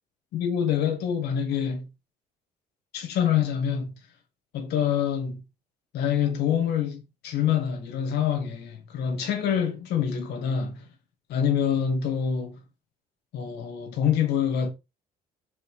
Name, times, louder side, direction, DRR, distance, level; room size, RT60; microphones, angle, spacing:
voice 1, 0.3-1.9 2.9-4.0 4.5-5.4 5.9-10.9 11.3-12.6 13.3-14.7, left 8 dB, 80° left, 1.9 m, -26 dB
6.4 x 5.5 x 3.5 m
cardioid pair, 110°, 17 cm